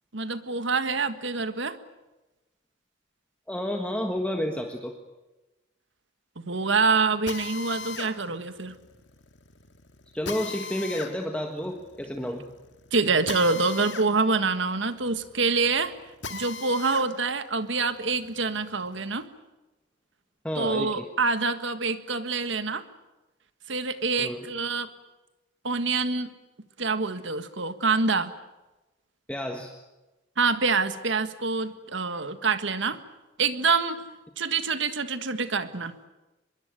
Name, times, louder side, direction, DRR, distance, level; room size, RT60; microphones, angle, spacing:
voice 1, 0.1-1.8 6.4-8.8 12.9-15.9 16.3-19.3 20.5-22.8 23.7-24.9 25.6-26.3 26.8-28.3 30.4-33.0 33.4-34.0 34.4-35.9, right 4 dB, 70° right, 11 dB, 1.7 m, -26 dB
voice 2, 3.5-4.9 10.1-12.4 20.4-21.0 24.2-24.5 29.3-29.7, equal, 5° left, 3 dB, 1.5 m, -30 dB
Drill, 7.3-17.1 17.5-19.2, left 4 dB, 65° left, 2.1 m, -40 dB
24.0 x 22.0 x 9.1 m, 1.1 s
head